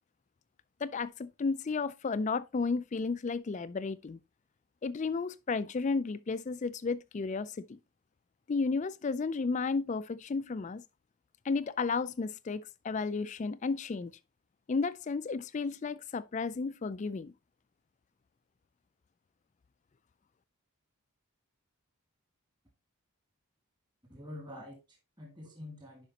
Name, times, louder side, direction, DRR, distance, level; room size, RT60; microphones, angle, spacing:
voice 1, 0.8-4.2 4.8-7.8 8.5-10.8 11.4-14.1 14.7-17.3, left 4 dB, 35° left, 0.3 m, -33 dB
voice 2, 24.1-26.1, left 1 dB, 20° right, 2.1 m, -47 dB
10.5 x 5.0 x 2.8 m
head